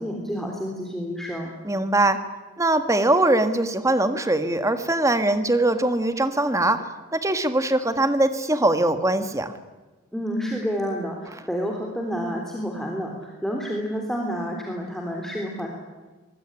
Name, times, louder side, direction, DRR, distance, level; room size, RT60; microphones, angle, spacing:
voice 1, 0.0-1.5 10.1-15.7, equal, ahead, 0 dB, 3.5 m, -29 dB
voice 2, 1.6-2.2 2.6-6.8 7.1-9.5, right 2 dB, 15° right, 9 dB, 1.7 m, -21 dB
25.0 x 22.0 x 9.9 m, 1.2 s
head